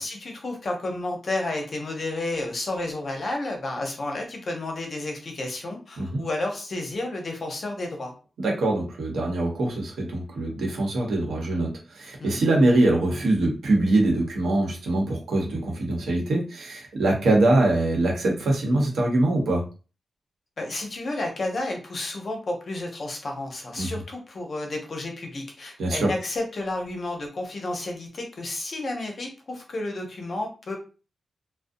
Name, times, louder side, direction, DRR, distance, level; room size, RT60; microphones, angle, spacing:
voice 1, 0.0-8.1 12.2-12.4 20.6-30.8, left 2 dB, 45° left, 2 dB, 0.6 m, -31 dB
voice 2, 8.4-19.6 23.8-24.0 25.8-26.1, right 2 dB, 90° right, -1 dB, 0.9 m, -23 dB
2.5 x 2.0 x 2.6 m, 0.34 s
wide cardioid pair, 145°, 0 cm